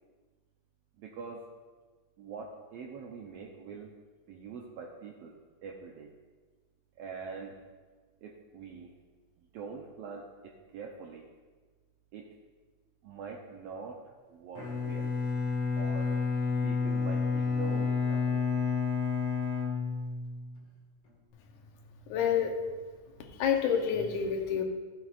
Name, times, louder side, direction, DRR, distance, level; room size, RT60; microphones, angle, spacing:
voice 1, 1.0-1.4 2.2-3.9 4.3-6.1 7.0-7.5 8.2-8.9 9.4-11.3 12.1-12.3 13.0-14.0 14.3-15.1 15.8-16.2 16.6-18.6, right 5 dB, 70° right, 0 dB, 1.6 m, -44 dB
Bowed string instrument, 14.5-20.6, left 5 dB, 50° left, 2.5 m, -30 dB
voice 2, 22.1-22.5 23.3-24.6, left 7 dB, 85° left, 3 dB, 2.4 m, -28 dB
15.0 x 7.9 x 2.5 m, 1.4 s
omnidirectional pair, 3.4 m